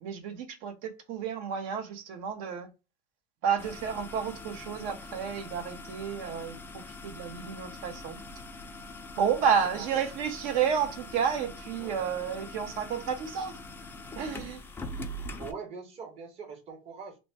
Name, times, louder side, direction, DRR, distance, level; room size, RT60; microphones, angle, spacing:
voice 1, 0.0-2.7 3.4-8.2 9.2-13.6 14.2-14.6, right 7 dB, 65° right, 1.0 m, -31 dB
sound 1, 3.6-15.5, left 2 dB, 15° left, 0.4 m, -43 dB
voice 2, 15.4-17.2, right 5 dB, 40° right, 1.1 m, -42 dB
3.0 x 2.1 x 4.1 m
supercardioid pair, 135°, 16 cm